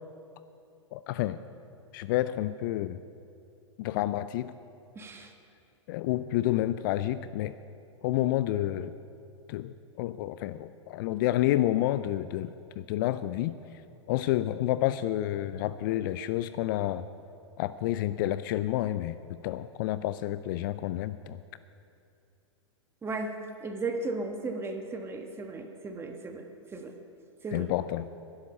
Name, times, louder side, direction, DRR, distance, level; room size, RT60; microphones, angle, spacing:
voice 1, 0.9-1.4 1.9-3.0 3.8-4.5 5.9-7.5 8.0-8.9 9.5-12.5 12.8-13.5 14.1-17.0 17.6-19.1 19.4-21.4 27.5-28.1, left 14 dB, 45° left, 14 dB, 0.4 m, -29 dB
voice 2, 4.9-5.3 23.0-23.3 23.6-26.9 27.4-27.7, right 3 dB, 15° right, 4 dB, 1.3 m, -35 dB
11.5 x 11.0 x 6.5 m, 2.6 s
hypercardioid pair, 110°, 16 cm